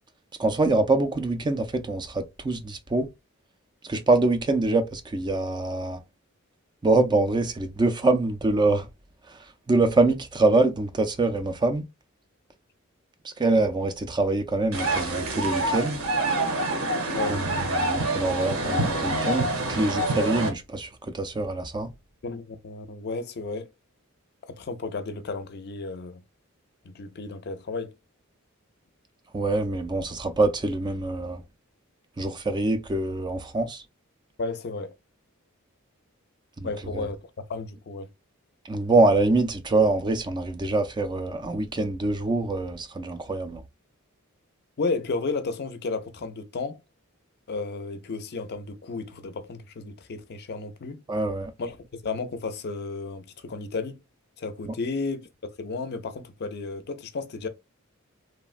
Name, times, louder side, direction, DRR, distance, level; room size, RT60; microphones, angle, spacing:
voice 1, 0.4-3.1 3.8-6.0 6.8-8.9 9.7-11.8 13.4-16.0 17.3-17.4 17.8-20.9 21.1-21.9 29.3-31.4 32.2-33.8 36.6-36.7 36.9-37.0 38.7-43.6 51.1-51.5, right 2 dB, 20° right, 0.4 m, -24 dB
sound 1, 14.7-20.5, right 2 dB, 75° right, 1.0 m, -26 dB
voice 2, 22.2-23.7 24.4-26.2 26.8-27.9 34.4-34.9 36.6-37.2 37.5-38.1 44.8-46.8 47.5-51.0 51.6-54.0 54.4-55.3 55.6-57.5, left 3 dB, 50° left, 0.5 m, -33 dB
3.0 x 2.1 x 2.4 m
head